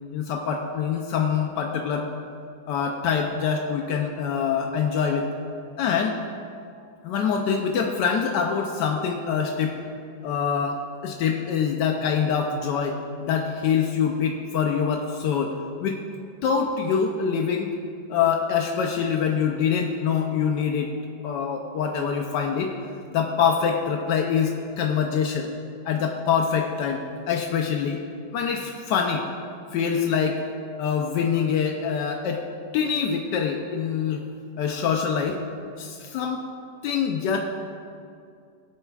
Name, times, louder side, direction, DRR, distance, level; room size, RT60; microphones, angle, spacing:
voice 1, 0.1-2.1 2.7-5.3 5.8-6.2 7.0-9.8 10.2-13.0 13.2-15.5 15.8-16.0 16.4-17.7 18.1-20.9 21.2-22.7 23.1-25.5 25.9-28.0 28.3-29.2 29.7-30.4 30.8-32.4 32.7-34.2 34.6-35.4 35.8-36.4 36.8-37.4, left 7 dB, 80° left, 2 dB, 1.3 m, -25 dB
17.0 x 9.8 x 2.3 m, 2.4 s
omnidirectional pair, 1.9 m